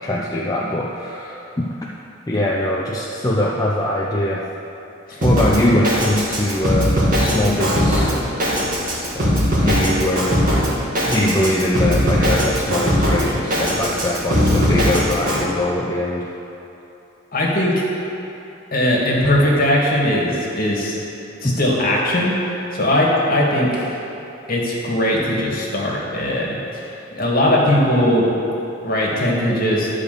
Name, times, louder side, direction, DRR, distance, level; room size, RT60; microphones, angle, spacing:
voice 1, 0.0-1.7 2.3-4.4 5.2-8.7 9.1-10.5 11.0-16.3 21.4-21.6, left 1 dB, 20° left, -3 dB, 0.6 m, -22 dB
Drum kit, 5.2-15.4, equal, 45° right, 2.0 m, -19 dB
voice 2, 17.3-17.7 18.7-20.9 21.4-22.3 22.7-23.7 24.5-26.8 27.1-28.3 28.8-29.9, left 1 dB, 50° left, -4 dB, 2.0 m, -19 dB
11.5 x 5.0 x 6.8 m, 2.9 s
head